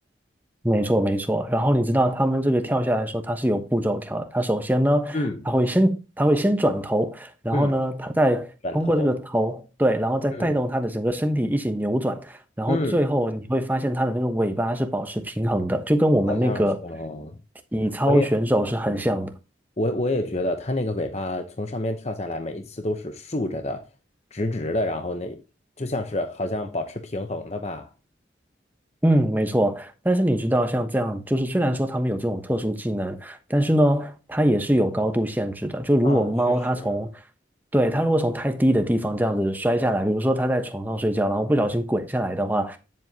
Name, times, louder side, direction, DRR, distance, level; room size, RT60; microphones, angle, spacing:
voice 1, 0.6-5.2 5.5-16.8 17.7-19.3 29.0-37.1 37.7-42.8, equal, 10° right, 1.1 m, -23 dB
voice 2, 8.6-9.1 10.3-10.6 12.7-13.0 16.3-17.4 18.0-18.3 18.9-19.0 19.8-23.8 24.3-25.4 25.8-27.9 36.0-36.9, left 1 dB, 35° left, 0.9 m, -28 dB
10.0 x 7.6 x 2.8 m
head